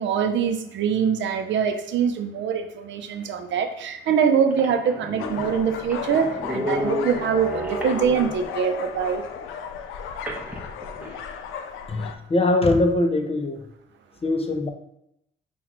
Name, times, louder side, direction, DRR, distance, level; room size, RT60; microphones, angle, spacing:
voice 1, 0.0-9.2, right 7 dB, 70° right, 6 dB, 0.6 m, -23 dB
sound 1, 3.6-3.7 4.2-4.3 4.5-8.6 10.3-11.3, equal, 5° right, 0.9 m, -32 dB
sound 2, 5.2-12.1, left 7 dB, 90° left, 0.4 m, -35 dB
voice 2, 11.9-13.7 14.2-14.7, left 2 dB, 30° left, 6 dB, 0.5 m, -22 dB
5.7 x 2.3 x 3.0 m, 0.80 s
cardioid pair, 90°, 20 cm